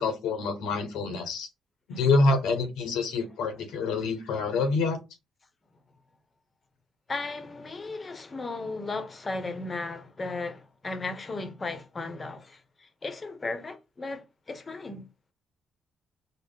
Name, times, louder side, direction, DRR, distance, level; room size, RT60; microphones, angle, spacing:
voice 1, 0.0-1.5 1.9-5.0, left 3 dB, 90° left, 1.0 m, -26 dB
voice 2, 7.1-15.1, left 3 dB, 30° left, 0.8 m, -36 dB
4.2 x 2.0 x 3.5 m
cardioid pair, 90°, 0 cm